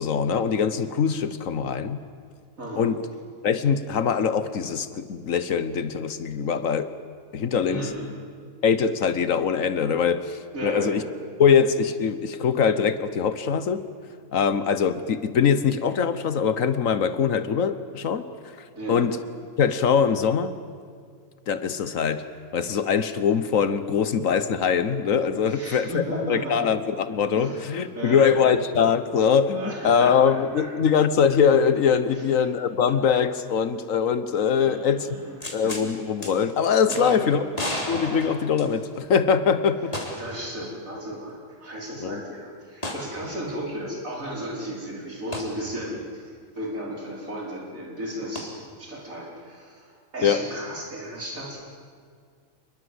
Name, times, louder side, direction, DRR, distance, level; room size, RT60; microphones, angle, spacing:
voice 1, 0.0-2.0 2.8-3.0 3.4-6.9 7.3-7.9 8.6-11.0 11.4-13.9 14.3-18.3 18.9-19.2 19.6-20.5 21.5-22.2 22.5-35.1 35.5-37.4 37.9-40.0 42.0-42.2 50.2-50.4, left 7 dB, 75° left, 12 dB, 1.4 m, -22 dB
voice 2, 2.6-2.9 7.7-8.2 10.5-11.0 18.7-19.1 25.5-26.6 27.3-28.4 29.5-30.7 32.1-32.2 34.6-35.4 36.9-37.5 40.2-51.6, right 1 dB, 80° right, -2 dB, 5.2 m, -34 dB
sound 1, 35.4-35.9 36.2-36.3 36.9-37.0 37.5-39.1 39.9-40.4 40.7-40.8 42.8-43.1 45.3-45.5 48.3-48.4, left 1 dB, 30° left, 3.5 m, -32 dB
27.5 x 21.5 x 8.0 m, 2.1 s
omnidirectional pair, 1.4 m